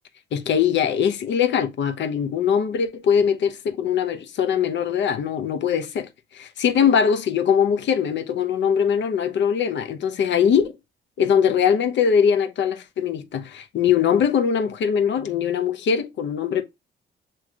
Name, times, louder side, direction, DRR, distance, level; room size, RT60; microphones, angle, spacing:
voice 1, 0.3-10.7 11.2-16.6, left 7 dB, 65° left, 0.8 m, -21 dB
6.2 x 3.1 x 2.3 m
cardioid pair, 90°, 20 cm